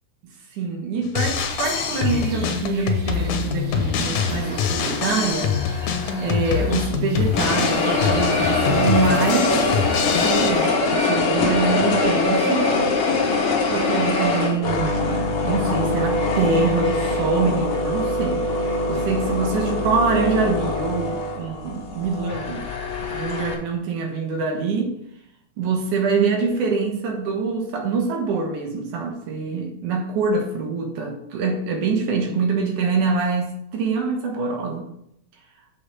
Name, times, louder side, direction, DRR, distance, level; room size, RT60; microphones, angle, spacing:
voice 1, 0.5-5.5 6.2-9.6 10.2-12.7 13.7-18.4 18.9-22.7 23.0-24.9 25.6-34.9, right 4 dB, 85° right, 2.8 m, -25 dB
Drum kit, 1.0-10.5, left 7 dB, 75° left, 2.2 m, -25 dB
sound 1, 1.2-10.6, left 1 dB, 45° right, 2.2 m, -36 dB
sound 2, 4.2-6.9 7.3-23.5, left 3 dB, 50° left, 1.9 m, -23 dB
6.6 x 5.7 x 6.6 m
omnidirectional pair, 3.4 m